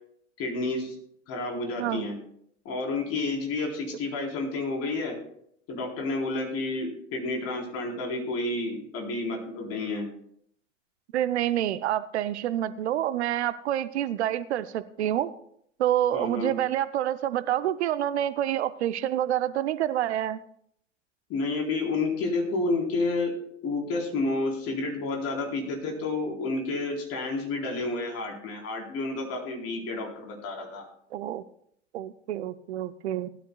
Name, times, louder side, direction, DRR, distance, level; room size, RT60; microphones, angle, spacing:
voice 1, 0.4-0.9 1.3-2.2 2.6-5.2 5.7-10.1 16.1-16.5 21.3-23.3 23.6-30.9, left 3 dB, 40° left, 1 dB, 3.9 m, -30 dB
voice 2, 11.1-15.3 15.8-20.4 31.1-31.4 31.9-33.3, right 12 dB, 60° right, 15 dB, 0.7 m, -27 dB
19.5 x 12.5 x 2.3 m, 0.68 s
figure-of-eight pair, 90°, 38 cm